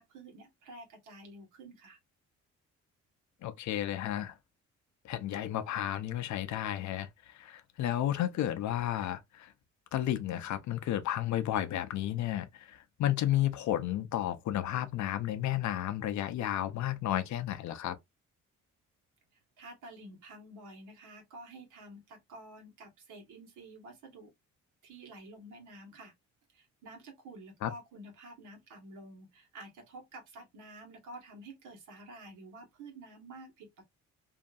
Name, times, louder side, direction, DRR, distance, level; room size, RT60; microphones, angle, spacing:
voice 1, 0.0-2.0 19.6-24.3 24.8-26.1 26.5-33.8, right 2 dB, 85° right, 1.3 m, -50 dB
voice 2, 3.4-4.3 5.0-9.5 9.9-18.0 27.6-27.7, left 12 dB, 70° left, 0.6 m, -32 dB
2.7 x 2.5 x 2.3 m
cardioid pair, 90°, 30 cm